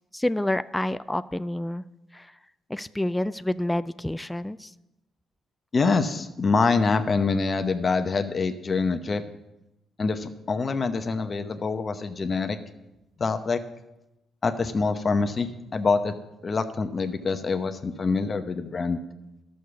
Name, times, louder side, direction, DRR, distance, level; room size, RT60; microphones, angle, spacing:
voice 1, 0.1-1.8 2.1-2.3 2.7-4.7, left 1 dB, 10° left, 13 dB, 0.3 m, -28 dB
voice 2, 5.7-9.2 10.0-12.6 13.2-13.6 14.4-16.1 16.4-19.0, left 4 dB, 35° left, 8 dB, 0.8 m, -25 dB
12.0 x 6.5 x 6.9 m, 0.94 s
cardioid pair, 90°, 0 cm